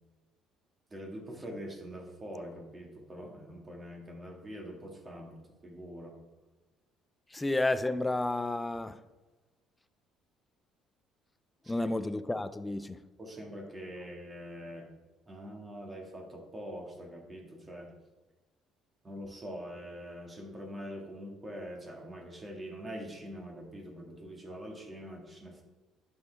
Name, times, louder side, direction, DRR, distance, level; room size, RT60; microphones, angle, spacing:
voice 1, 0.9-6.1 11.6-11.9 13.2-14.9 15.3-17.9 19.0-25.6, equal, 25° right, 1.9 m, -44 dB
voice 2, 7.3-9.0 11.7-13.0, left 2 dB, 10° left, 0.5 m, -31 dB
11.0 x 6.3 x 3.4 m
cardioid pair, 105°, 0 cm